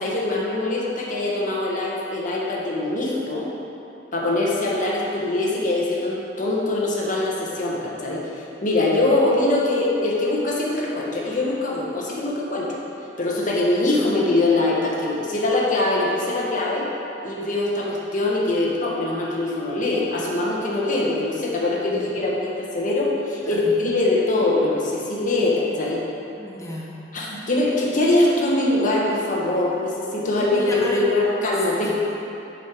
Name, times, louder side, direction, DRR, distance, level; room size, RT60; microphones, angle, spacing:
voice 1, 0.0-3.5 4.1-12.7 13.2-16.9 17.2-26.0 27.1-32.0, left 2 dB, 45° left, -4 dB, 1.3 m, -23 dB
voice 2, 21.8-22.1 23.4-23.7 26.4-26.9 30.3-31.1 32.0-32.1, equal, 15° left, -4 dB, 1.0 m, -33 dB
6.2 x 5.3 x 6.2 m, 2.9 s
head